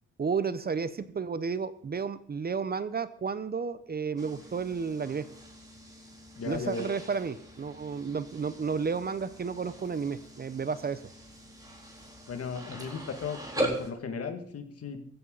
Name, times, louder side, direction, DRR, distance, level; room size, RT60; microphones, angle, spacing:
voice 1, 0.2-5.3 6.4-11.0, right 5 dB, 30° right, 13 dB, 0.8 m, -32 dB
sound 1, 4.2-13.9, right 1 dB, 10° right, 3.9 m, -40 dB
voice 2, 6.3-6.9 12.3-15.0, left 5 dB, 50° left, 6 dB, 2.2 m, -36 dB
15.0 x 14.5 x 4.0 m, 0.65 s
cardioid pair, 90°, 30 cm